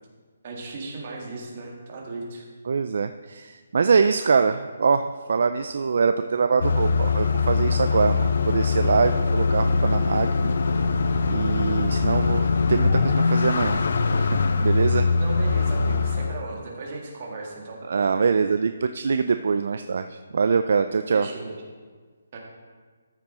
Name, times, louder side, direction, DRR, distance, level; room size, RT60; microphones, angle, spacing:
voice 1, 0.4-2.5 15.1-17.8 21.1-21.5 22.3-22.4, right 3 dB, 30° right, -2 dB, 1.7 m, -36 dB
voice 2, 2.7-10.6 11.3-13.8 14.2-15.0 17.9-21.3, right 5 dB, 50° right, 9 dB, 0.4 m, -23 dB
sound 1, 6.6-16.4, left 4 dB, 55° left, 0.5 m, -22 dB
13.5 x 6.1 x 4.3 m, 1.5 s
hypercardioid pair, 175°, 0 cm